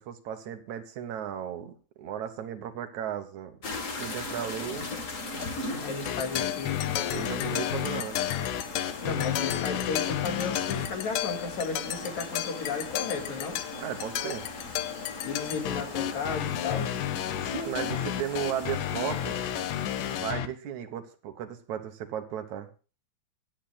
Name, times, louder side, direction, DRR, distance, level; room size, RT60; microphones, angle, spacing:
voice 1, 0.0-3.6 4.0-4.9 7.1-8.2 13.7-14.5 17.4-19.4 20.1-22.7, right 9 dB, 70° right, 8 dB, 2.4 m, -35 dB
sound 1, 3.6-20.2, left 3 dB, 45° left, 1.1 m, -39 dB
voice 2, 5.8-6.8 9.0-13.6 15.2-17.0, left 5 dB, 65° left, 4 dB, 3.4 m, -34 dB
sound 2, 6.1-20.5, left 11 dB, 90° left, 2.4 m, -32 dB
24.5 x 9.0 x 2.2 m, 0.34 s
omnidirectional pair, 3.5 m